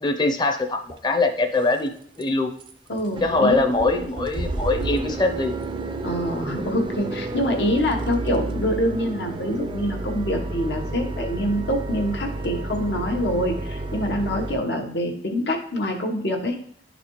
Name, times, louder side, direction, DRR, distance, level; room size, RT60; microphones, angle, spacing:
voice 1, 0.0-2.5 3.2-5.5, left 3 dB, 25° left, 7 dB, 0.6 m, -22 dB
sound 1, 0.9-1.0 1.5-1.9 2.2-2.3 2.6-2.7 3.0-14.5, right 2 dB, 30° right, 0.4 m, -31 dB
voice 2, 2.9-3.6 6.0-16.6, equal, 80° left, 3 dB, 1.1 m, -25 dB
11.0 x 4.1 x 3.0 m, 0.62 s
head